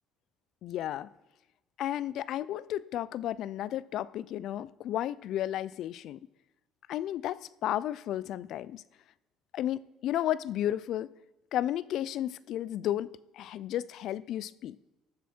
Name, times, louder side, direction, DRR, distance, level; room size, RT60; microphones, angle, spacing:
voice 1, 0.6-1.1 1.8-6.2 6.9-8.8 9.5-11.1 11.5-14.8, left 12 dB, 60° left, 0.4 m, -33 dB
20.0 x 6.9 x 4.5 m
cardioid pair, 130°, 0 cm